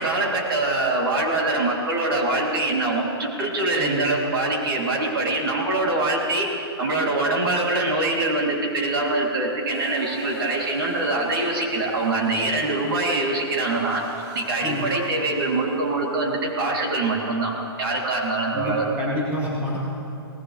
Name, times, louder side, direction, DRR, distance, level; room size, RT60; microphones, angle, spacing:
voice 1, 0.0-6.5 6.8-14.1 14.3-19.1, right 2 dB, 55° right, -1 dB, 2.9 m, -24 dB
sound 1, 9.7-16.8, right 2 dB, 30° right, 1.5 m, -41 dB
voice 2, 18.5-19.8, left 1 dB, 10° right, -6 dB, 2.3 m, -28 dB
23.0 x 18.0 x 3.3 m, 2.7 s
hypercardioid pair, 165°, 14 cm